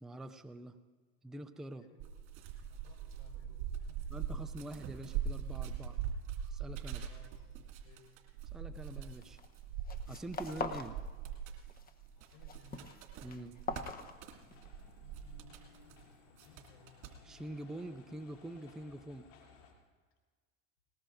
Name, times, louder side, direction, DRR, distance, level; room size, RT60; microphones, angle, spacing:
voice 1, 0.0-0.8 1.2-1.9 4.1-6.0 6.5-7.1 8.5-9.4 10.1-11.0 13.2-13.6 17.2-19.3, right 1 dB, ahead, 8 dB, 0.4 m, -45 dB
voice 2, 1.7-2.1 2.7-4.2 6.9-7.6 7.8-8.1 12.1-13.1 15.0-17.0, left 4 dB, 65° left, 1 dB, 4.9 m, -63 dB
sound 1, 2.0-16.0 16.4-17.1, right 8 dB, 55° right, 2.5 m, -42 dB
sound 2, 9.2-9.5 9.8-11.0 11.3-11.9 12.2-14.7, left 4 dB, 25° left, 1.0 m, -42 dB
sound 3, 13.7-19.7, left 5 dB, 90° left, 3.1 m, -61 dB
20.0 x 19.0 x 2.6 m, 1.5 s
hypercardioid pair, 105°, 36 cm